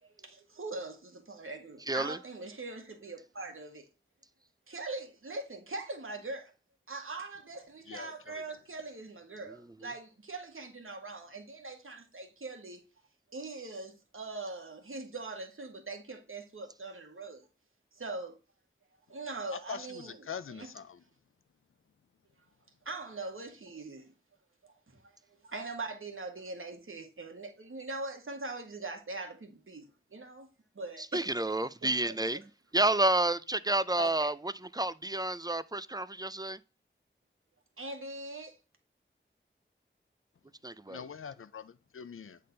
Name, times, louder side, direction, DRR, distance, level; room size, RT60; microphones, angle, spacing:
voice 1, 0.0-3.9 4.7-6.5 6.9-12.8 13.3-17.5 17.9-18.4 19.1-20.2 20.5-20.7 22.8-24.1 24.6-25.1 25.4-29.8 30.1-30.5 30.7-31.3 31.8-31.9 34.0-34.3 37.8-38.6, right 3 dB, 80° right, 1.5 m, -42 dB
voice 2, 1.9-2.2 9.5-9.6 31.0-32.4 32.7-36.6 40.6-41.0, right 2 dB, 20° right, 0.4 m, -30 dB
voice 3, 7.9-8.4 19.5-21.0 40.9-42.4, left 7 dB, 85° left, 0.5 m, -43 dB
8.5 x 3.7 x 3.9 m
wide cardioid pair, 60°, 21 cm